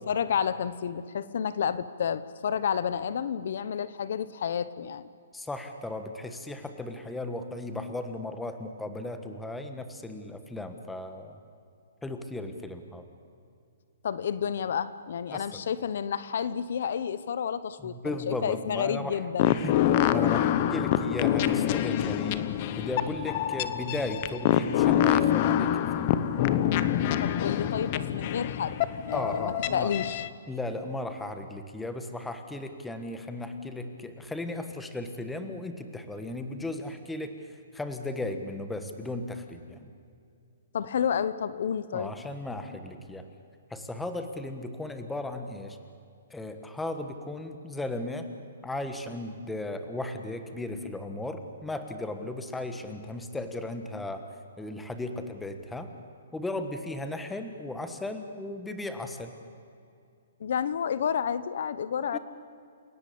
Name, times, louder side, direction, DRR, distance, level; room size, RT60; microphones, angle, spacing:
voice 1, 0.1-5.0 14.0-19.6 27.2-30.2 40.7-42.1 60.4-62.2, left 8 dB, 55° left, 15 dB, 1.0 m, -30 dB
voice 2, 5.3-11.4 12.0-13.0 15.3-15.6 17.8-19.2 19.5-22.4 22.8-26.1 29.1-29.9 30.5-37.3 37.7-39.9 41.9-43.3 43.7-45.8 46.3-48.3 48.6-54.2 54.6-55.9 56.3-59.3 62.1-62.2, left 2 dB, 5° left, 7 dB, 1.4 m, -36 dB
sound 1, 19.4-30.3, left 11 dB, 30° left, 1.0 m, -26 dB
29.5 x 17.5 x 8.6 m, 2.4 s
hypercardioid pair, 165°, 0 cm